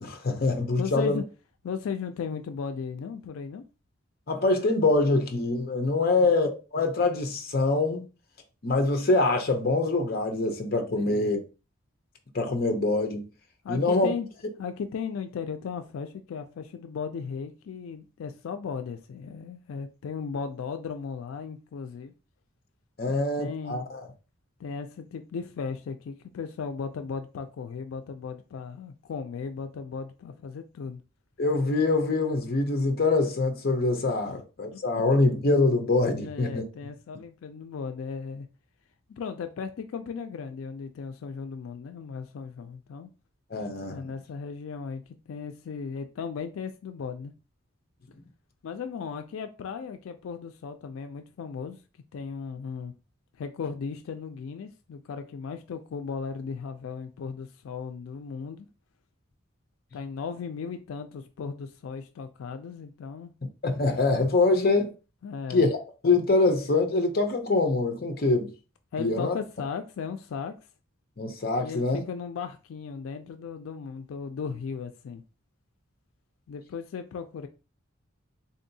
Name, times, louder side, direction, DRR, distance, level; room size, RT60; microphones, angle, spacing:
voice 1, 0.0-1.2 4.3-8.1 8.6-11.4 12.3-13.2 13.7-14.1 23.0-24.1 31.4-36.6 43.5-44.0 63.6-64.9 65.5-65.7 66.0-68.5 69.0-69.4 71.2-72.0, left 3 dB, 50° left, 0.6 m, -24 dB
voice 2, 0.8-1.2 1.6-3.6 6.0-6.3 10.9-11.3 13.6-14.3 14.6-22.1 23.1-23.8 24.6-31.0 34.3-34.4 34.7-34.8 36.2-38.5 39.1-43.1 43.9-47.3 48.6-51.8 52.1-52.9 53.4-58.7 59.9-63.3 64.5-64.6 65.2-65.7 68.9-70.6 71.6-75.2 76.5-77.5, left 6 dB, 90° left, 0.4 m, -36 dB
3.7 x 2.7 x 2.6 m
head